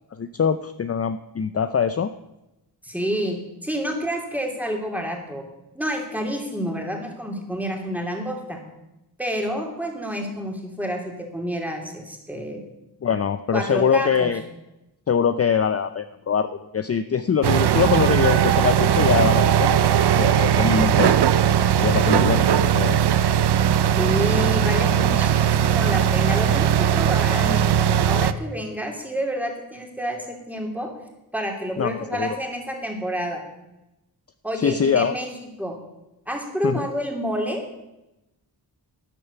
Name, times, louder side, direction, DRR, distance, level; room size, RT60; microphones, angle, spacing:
voice 1, 0.1-2.1 13.0-14.4 15.1-21.1 21.8-23.0 31.8-32.4 34.6-35.1 36.6-36.9, left 7 dB, 35° left, 11 dB, 0.5 m, -23 dB
voice 2, 2.8-5.4 5.7-8.6 9.2-12.6 13.5-14.3 20.6-20.9 24.0-30.9 31.3-33.4 34.4-35.3 35.6-35.8 36.3-37.6, equal, 5° right, 2 dB, 2.9 m, -29 dB
sound 1, 17.4-28.3, right 9 dB, 75° right, 0.7 m, -19 dB
12.5 x 10.0 x 6.9 m, 0.94 s
wide cardioid pair, 110°, 40 cm